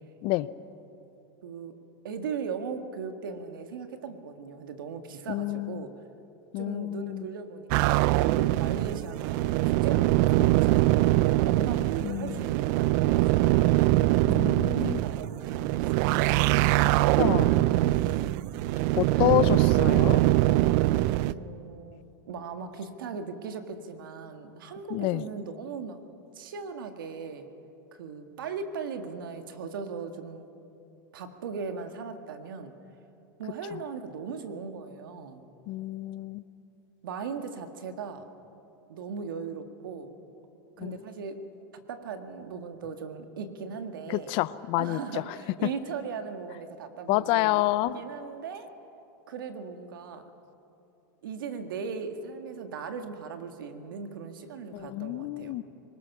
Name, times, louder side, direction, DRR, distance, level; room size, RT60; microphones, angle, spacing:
voice 1, 1.4-1.8 2.0-6.0 6.6-8.0 8.3-13.7 14.3-16.2 17.8-18.3 19.1-19.3 21.2-22.0 22.3-26.0 26.3-27.5 27.9-30.5 31.1-32.7 33.4-35.4 37.0-38.3 38.9-40.2 40.8-41.4 41.9-44.3 44.8-47.7 47.9-48.7 49.3-50.3 51.2-55.6, right 5 dB, 85° right, 7 dB, 1.8 m, -38 dB
voice 2, 5.3-5.8 6.5-7.3 10.4-10.5 12.0-12.4 14.3-15.0 17.2-17.5 18.9-20.2 24.9-25.2 35.7-36.4 40.8-41.0 44.1-45.2 47.1-48.0 54.7-55.6, left 18 dB, 50° left, 17 dB, 0.7 m, -28 dB
sound 1, 7.7-21.3, right 17 dB, 60° right, 0.5 m, -23 dB
23.5 x 20.0 x 6.0 m, 2.8 s
supercardioid pair, 120°, 11 cm